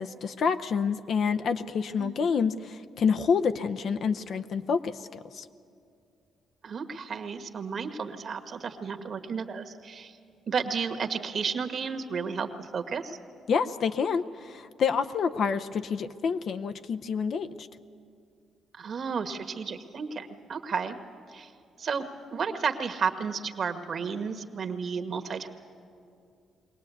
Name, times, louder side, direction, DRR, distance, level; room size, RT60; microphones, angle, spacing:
voice 1, 0.0-5.5 13.5-17.7, left 6 dB, 60° left, 9 dB, 0.6 m, -28 dB
voice 2, 2.0-2.3 6.6-10.2 10.5-13.2 18.8-20.9 21.3-21.5 21.8-22.0 22.3-25.5, right 5 dB, 50° right, 7 dB, 1.5 m, -32 dB
22.5 x 18.0 x 8.4 m, 2.4 s
cardioid pair, 90°, 0 cm